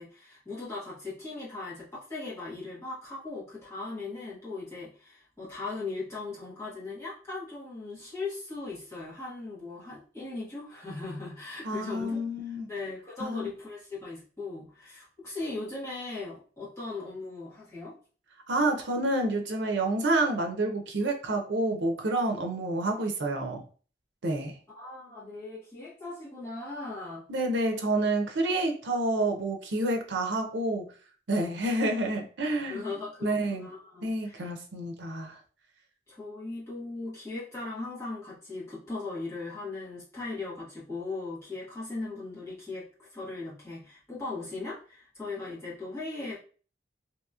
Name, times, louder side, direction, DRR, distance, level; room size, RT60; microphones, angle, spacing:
voice 1, 0.0-12.3 12.7-17.9 24.7-27.3 32.7-34.5 36.1-46.4, left 3 dB, 15° left, -8 dB, 1.4 m, -38 dB
voice 2, 11.6-12.7 13.2-13.5 18.5-23.6 24.2-24.6 27.3-30.9 31.3-32.8 33.2-33.7 34.0-35.4, right 2 dB, 90° right, 4 dB, 0.6 m, -28 dB
2.9 x 2.8 x 2.3 m, 0.40 s
head